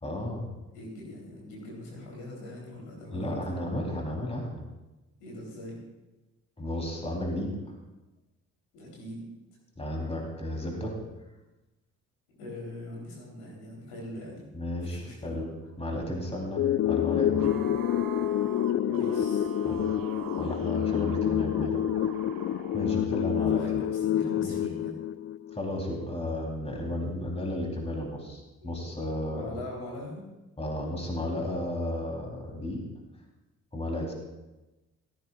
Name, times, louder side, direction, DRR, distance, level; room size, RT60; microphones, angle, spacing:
voice 1, 0.0-0.5 3.1-4.6 6.6-7.7 9.8-11.0 14.5-15.5 15.8-17.6 19.6-19.9 20.4-21.8 22.7-23.8 24.4-24.6 25.5-29.6 30.6-32.9 33.7-34.1, left 1 dB, 15° left, 0 dB, 3.5 m, -33 dB
voice 2, 0.7-3.4 5.2-5.8 8.7-9.3 12.4-14.5 14.8-15.4 18.8-19.5 23.4-25.0 28.6-28.8 29.2-30.3 31.2-31.4, left 1 dB, 70° left, -3 dB, 3.6 m, -42 dB
sound 1, 16.6-25.6, left 11 dB, 35° left, 0.5 m, -28 dB
sound 2, 16.7-23.0, right 8 dB, 55° right, 1.4 m, -44 dB
16.5 x 14.5 x 2.4 m, 1.1 s
figure-of-eight pair, 40°, 40 cm